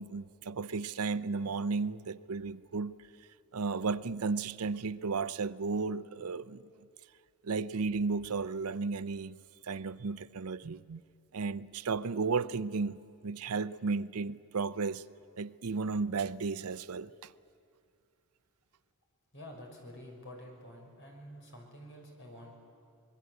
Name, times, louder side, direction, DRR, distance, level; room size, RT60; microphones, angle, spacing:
voice 1, 0.0-3.0 3.5-6.6 7.4-9.4 9.6-11.0 11.3-15.0 15.4-17.3, right 4 dB, 85° right, 0.6 m, -34 dB
voice 2, 19.3-22.6, equal, 55° left, 5.8 m, -49 dB
25.0 x 21.0 x 8.0 m
head